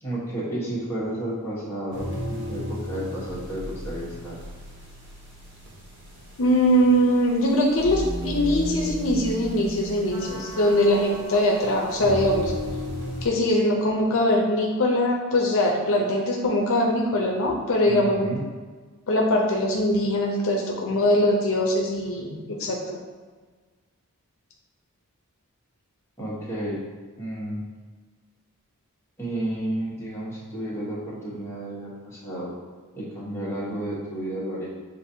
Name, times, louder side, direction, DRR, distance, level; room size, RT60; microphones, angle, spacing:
voice 1, 0.0-4.4 17.9-18.5 26.2-26.8 27.2-27.6 29.2-32.5 32.9-34.7, right 1 dB, 10° left, -7 dB, 1.2 m, -32 dB
sound 1, 1.9-13.3, equal, 55° right, 1.4 m, -34 dB
voice 2, 6.4-12.5 13.2-18.3 19.1-23.0, left 1 dB, 65° left, -1 dB, 0.6 m, -22 dB
6.6 x 2.6 x 2.7 m, 1.4 s
head